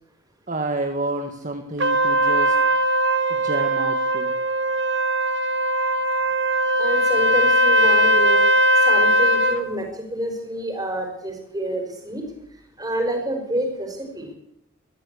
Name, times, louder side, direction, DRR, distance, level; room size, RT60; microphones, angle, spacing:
voice 1, 0.5-2.6 3.3-4.3, right 2 dB, 35° right, 6 dB, 1.6 m, -29 dB
Trumpet, 1.8-9.6, equal, 55° right, 1.9 m, -19 dB
voice 2, 6.8-8.4 8.7-12.2 12.8-14.3, right 1 dB, 20° right, 4 dB, 5.2 m, -28 dB
23.0 x 14.5 x 8.4 m, 0.81 s
head